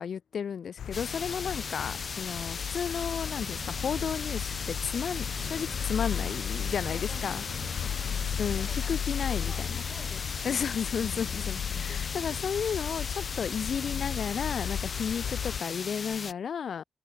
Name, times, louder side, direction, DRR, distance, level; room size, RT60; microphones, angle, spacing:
voice 1, 0.0-7.4 8.4-9.8 10.4-16.8, left 7 dB, 55° left, 0.4 m, -33 dB
sound 1, 0.8-15.6, left 9 dB, 70° left, 1.2 m, -35 dB
sound 2, 0.9-16.3, left 5 dB, 35° left, 1.2 m, -38 dB
sound 3, 3.4-12.4, right 9 dB, 80° right, 1.2 m, -48 dB
voice 2, 5.3-6.3 6.9-12.2, left 1 dB, 5° left, 3.0 m, -50 dB
wide cardioid pair, 180°, 0 cm